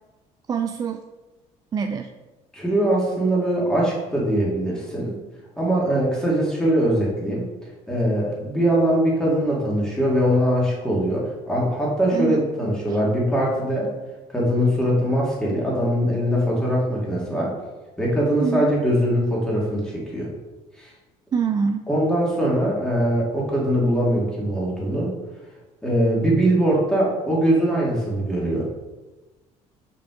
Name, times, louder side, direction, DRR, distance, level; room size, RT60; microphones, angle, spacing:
voice 1, 0.5-1.0 1.7-2.1 12.1-12.5 18.4-18.7 21.3-21.9, right 6 dB, 30° right, 6 dB, 0.4 m, -24 dB
voice 2, 2.5-5.2 5.6-7.5 7.9-13.9 14.3-17.5 18.0-20.3 20.8-20.9 21.9-25.1 25.8-28.7, right 1 dB, 5° left, -5 dB, 2.5 m, -22 dB
6.2 x 5.7 x 5.0 m, 1.1 s
cardioid pair, 135°, 13 cm